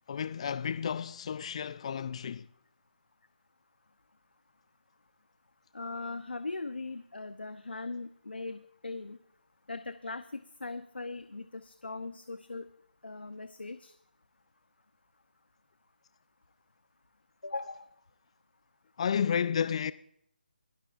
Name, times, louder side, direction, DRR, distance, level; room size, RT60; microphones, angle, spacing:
voice 1, 0.1-2.5 19.0-19.9, left 7 dB, 35° left, 0.4 m, -31 dB
voice 2, 5.7-9.2 9.7-12.7 13.0-13.9 17.4-17.9, left 3 dB, 85° left, 0.8 m, -40 dB
25.0 x 12.5 x 2.5 m
figure-of-eight pair, 155°, 5 cm